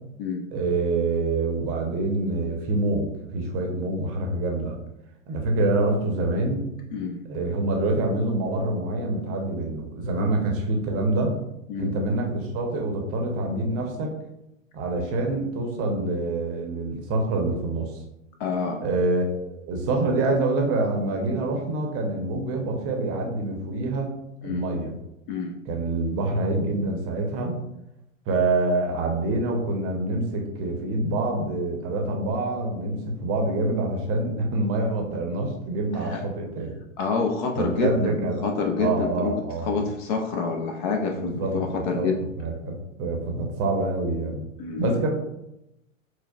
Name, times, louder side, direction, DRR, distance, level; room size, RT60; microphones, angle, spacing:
voice 1, 0.5-4.8 5.3-6.7 7.3-11.3 11.8-14.1 14.7-17.9 18.8-24.1 24.4-24.9 25.7-27.6 28.3-36.8 37.5-38.4 38.8-39.8 41.1-42.1 42.4-44.4 44.8-45.1, right 2 dB, 35° right, 1 dB, 0.7 m, -26 dB
voice 2, 6.9-7.2 10.2-10.3 11.7-11.9 15.0-15.1 18.4-18.8 24.4-24.6 25.3-25.6 35.9-36.2 37.0-38.1 38.4-39.3 39.7-42.2 44.6-45.0, left 4 dB, 40° left, 2 dB, 0.4 m, -27 dB
4.5 x 2.1 x 2.3 m, 0.87 s
hypercardioid pair, 110°, 40 cm